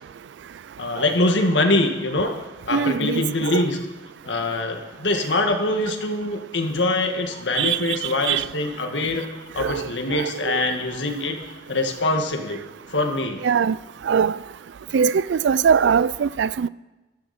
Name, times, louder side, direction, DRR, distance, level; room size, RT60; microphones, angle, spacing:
voice 1, 0.8-2.3 2.6-3.8 4.2-9.3 9.5-11.4 11.7-12.6 12.9-13.4, left 2 dB, 90° left, 1.7 m, -23 dB
voice 2, 2.7-3.7 7.6-8.5 9.6-10.6 13.4-13.8 14.0-14.4 14.9-16.7, right 7 dB, 80° right, 0.4 m, -22 dB
15.5 x 13.0 x 4.2 m
head